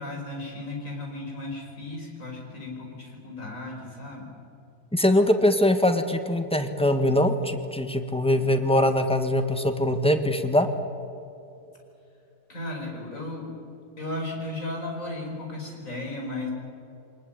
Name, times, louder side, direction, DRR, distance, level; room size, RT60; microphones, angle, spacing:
voice 1, 0.0-4.3 12.5-13.5 14.0-16.5, left 2 dB, 50° left, 1 dB, 5.4 m, -35 dB
voice 2, 4.9-10.7, left 1 dB, 5° left, 7 dB, 1.3 m, -22 dB
24.0 x 19.5 x 9.0 m, 2.7 s
omnidirectional pair, 1.8 m